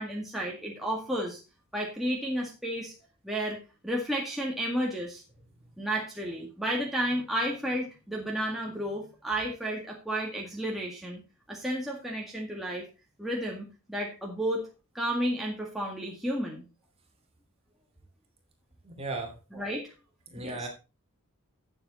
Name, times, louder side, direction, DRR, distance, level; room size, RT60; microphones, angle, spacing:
voice 1, 0.0-1.4 1.7-2.9 3.2-5.2 5.8-11.2 11.5-12.9 13.2-14.7 14.9-16.6 19.5-19.9 20.4-20.7, right 1 dB, ahead, -2 dB, 1.9 m, -32 dB
voice 2, 18.8-19.4 20.3-20.7, right 2 dB, 25° right, 3 dB, 2.6 m, -36 dB
11.5 x 7.3 x 4.1 m, 0.30 s
head